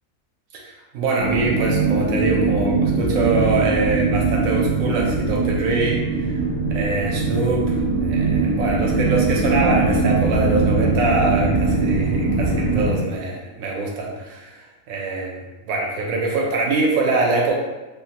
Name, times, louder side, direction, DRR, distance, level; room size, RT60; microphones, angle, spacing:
voice 1, 0.5-6.3 6.7-17.6, right 3 dB, 75° right, -2 dB, 1.0 m, -24 dB
sound 1, 1.2-12.9, right 3 dB, 60° left, 0.8 m, -21 dB
3.1 x 2.1 x 2.8 m, 1.1 s
omnidirectional pair, 1.6 m